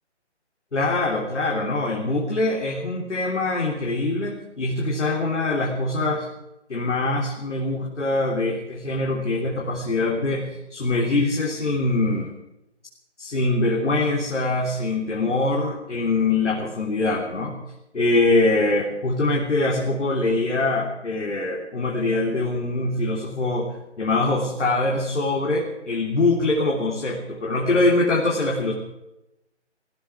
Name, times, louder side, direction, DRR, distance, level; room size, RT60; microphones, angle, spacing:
voice 1, 0.7-6.3 6.7-12.3 13.2-17.6 17.9-28.7, left 2 dB, 75° left, -2 dB, 3.5 m, -23 dB
19.5 x 16.0 x 4.7 m, 0.91 s
hypercardioid pair, 175°, 35 cm